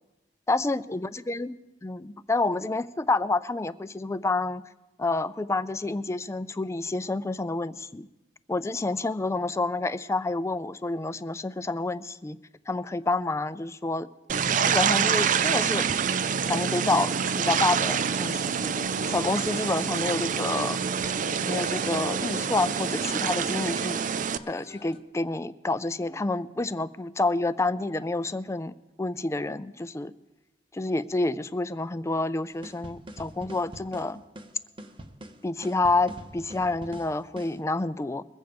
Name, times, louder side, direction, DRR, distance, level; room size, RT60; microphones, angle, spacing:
voice 1, 0.5-1.6 1.8-4.6 5.0-8.1 8.5-12.4 12.7-14.1 14.6-15.9 16.5-17.1 17.4-18.8 19.1-20.8 21.5-24.0 24.5-30.1 30.7-34.2 35.4-38.2, left 2 dB, 15° left, 15 dB, 0.4 m, -28 dB
sound 1, 14.3-24.4, right 6 dB, 50° right, 0.4 m, -26 dB
sound 2, 14.7-25.0, left 2 dB, 30° left, 1.0 m, -50 dB
sound 3, 32.6-37.6, right 1 dB, 30° right, 0.9 m, -44 dB
22.0 x 7.9 x 5.2 m, 1.0 s
head